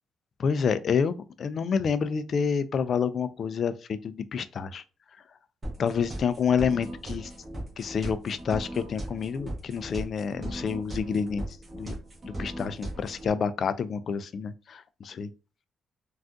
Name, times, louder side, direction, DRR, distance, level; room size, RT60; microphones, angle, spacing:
voice 1, 0.4-4.8 5.8-7.3 7.8-11.9 12.2-15.3, left 6 dB, 55° left, 0.3 m, -28 dB
sound 1, 5.6-13.3, right 1 dB, 25° right, 1.2 m, -38 dB
3.6 x 2.3 x 2.5 m
cardioid pair, 90°, 0 cm